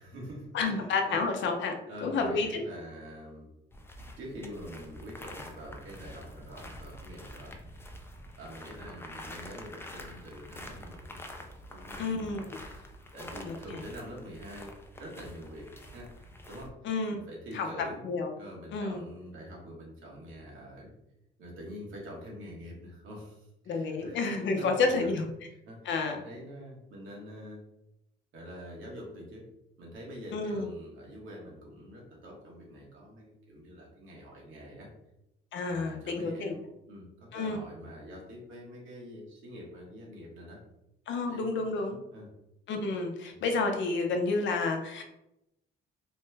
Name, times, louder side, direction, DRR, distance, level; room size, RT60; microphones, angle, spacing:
voice 1, 0.0-1.2 1.9-3.5 4.2-8.0 8.4-11.2 11.5-12.5 12.7-14.7 15.0-16.7 17.1-18.0 18.4-20.9 21.4-27.6 28.3-29.4 29.8-34.9 35.7-40.6 41.3-42.3 43.3-43.5, equal, 80° right, -3 dB, 1.1 m, -45 dB
voice 2, 0.5-2.6 12.0-12.6 13.4-13.5 16.8-17.2 17.5-17.7 18.0-18.3 18.7-19.0 23.7-25.3 25.9-26.2 30.3-30.7 35.5-36.5 37.3-37.6 41.1-42.0 42.7-45.0, left 3 dB, 70° left, 4 dB, 0.6 m, -30 dB
sound 1, 3.7-16.7, left 1 dB, 10° left, 0.4 m, -47 dB
3.0 x 2.2 x 3.2 m, 0.87 s
cardioid pair, 90°, 20 cm